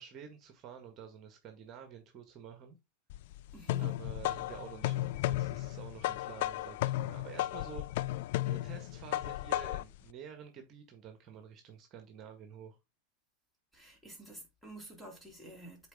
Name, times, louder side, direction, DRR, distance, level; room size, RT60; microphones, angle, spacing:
voice 1, 0.0-2.8 3.8-8.1 8.4-12.8, right 8 dB, 40° right, 1.7 m, -49 dB
sound 1, 3.1-10.0, left 15 dB, 70° left, 0.3 m, -34 dB
voice 2, 3.5-3.9 13.7-15.9, right 1 dB, ahead, 3.3 m, -49 dB
8.2 x 4.2 x 3.6 m
supercardioid pair, 120°, 0 cm